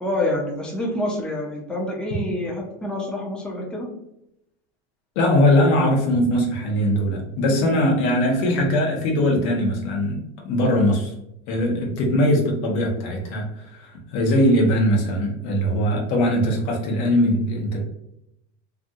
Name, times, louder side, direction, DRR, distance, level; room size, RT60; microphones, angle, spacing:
voice 1, 0.0-3.9, left 1 dB, 5° left, -2 dB, 0.6 m, -27 dB
voice 2, 5.2-11.1 11.5-17.8, equal, 70° left, 0 dB, 1.0 m, -21 dB
2.7 x 2.3 x 2.6 m, 0.80 s
supercardioid pair, 105°, 33 cm